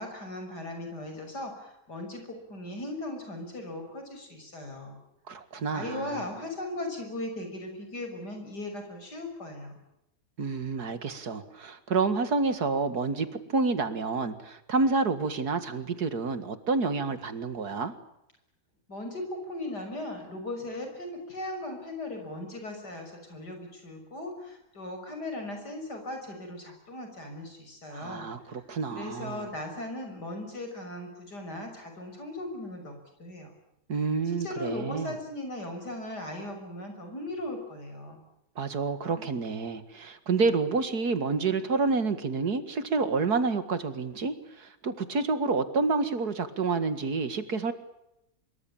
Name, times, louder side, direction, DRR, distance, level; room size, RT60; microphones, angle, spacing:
voice 1, 0.0-5.0 5.7-9.7 18.9-28.3 28.9-33.5 34.4-38.2, left 1 dB, 80° left, 5 dB, 6.9 m, -38 dB
voice 2, 5.3-6.2 10.4-17.9 27.9-29.5 33.9-35.1 38.6-47.7, right 4 dB, 70° right, 11 dB, 2.4 m, -29 dB
25.0 x 23.0 x 8.8 m, 0.84 s
omnidirectional pair, 1.7 m